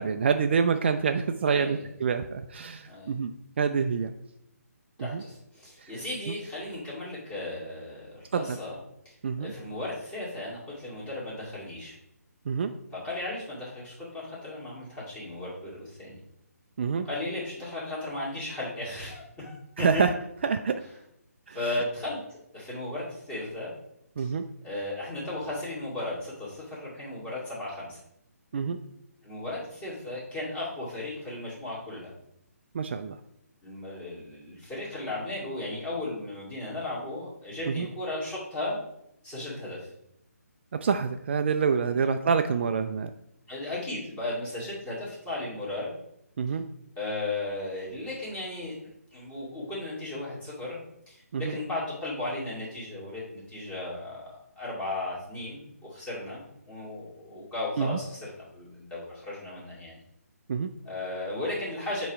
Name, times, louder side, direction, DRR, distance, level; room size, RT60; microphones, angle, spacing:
voice 1, 0.0-3.3 3.6-4.1 5.0-5.2 5.8-5.9 8.3-8.6 9.2-9.5 12.5-12.7 16.8-17.1 19.8-20.1 20.4-20.8 21.5-21.6 24.2-24.4 28.5-28.8 32.7-33.2 37.7-37.9 40.8-43.1 46.4-46.6 51.3-51.5 57.8-58.0 60.5-60.7, right 6 dB, 45° right, 7 dB, 0.4 m, -27 dB
voice 2, 1.5-1.8 2.9-3.1 5.0-8.8 9.0-11.9 13.0-16.2 17.0-20.0 21.5-23.7 24.2-24.3 24.6-28.0 29.2-32.1 33.6-38.9 39.2-39.9 41.9-42.1 43.5-45.9 47.0-48.7 49.1-50.8 51.1-60.0 60.8-62.1, left 2 dB, 15° left, -7 dB, 2.2 m, -35 dB
7.1 x 3.1 x 4.7 m, 0.79 s
figure-of-eight pair, 140°, 9 cm